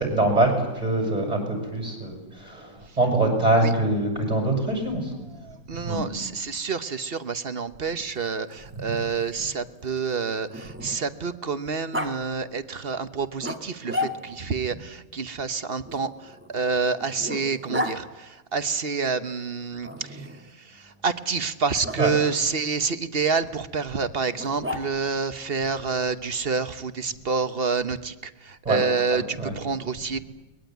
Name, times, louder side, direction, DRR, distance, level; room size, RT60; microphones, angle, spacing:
voice 1, 0.0-5.1 5.7-6.1 8.7-8.8 22.0-22.1 28.6-28.8 29.1-29.5, right 2 dB, 25° right, 3 dB, 7.5 m, -24 dB
voice 2, 5.4-30.2, right 5 dB, 45° right, 12 dB, 1.2 m, -28 dB
Growling, 7.8-11.2 11.9-12.1 13.4-14.5 15.9-18.0 19.8-20.5 21.8-22.0 24.3-25.2, left 1 dB, 10° right, 1.8 m, -34 dB
22.5 x 21.0 x 9.4 m, 1.1 s
omnidirectional pair, 1.5 m